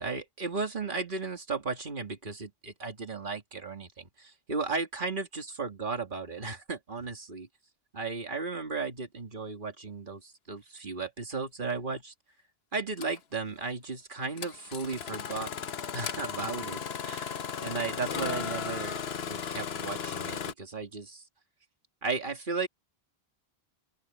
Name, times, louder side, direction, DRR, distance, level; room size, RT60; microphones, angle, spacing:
voice 1, 0.0-7.5 7.9-12.1 12.7-15.5 15.9-19.0 19.3-21.2 22.0-22.7, right 4 dB, 50° right, 2.4 m, -35 dB
Engine starting, 11.7-11.8 13.0-13.2 14.4-20.5, left 7 dB, 70° left, 1.1 m, -36 dB
open air
omnidirectional pair, 1.1 m